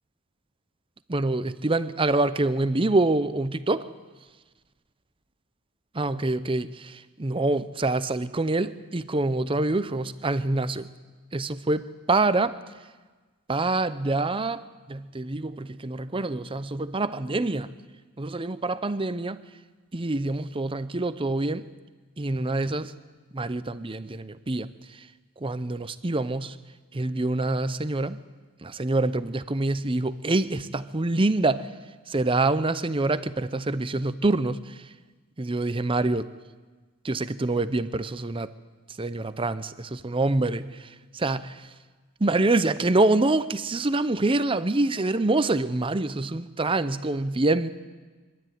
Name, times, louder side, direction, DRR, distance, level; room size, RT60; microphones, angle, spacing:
voice 1, 1.1-3.9 5.9-10.9 11.3-12.6 13.5-14.6 14.9-17.7 18.2-19.4 19.9-21.6 22.2-22.9 23.3-24.7 25.4-26.5 26.9-28.2 28.6-31.7 32.1-34.6 35.4-36.3 37.0-38.5 39.0-40.7 41.1-41.5 42.2-47.7, right 2 dB, 25° right, 13 dB, 0.6 m, -26 dB
23.5 x 12.5 x 9.3 m, 1.3 s
head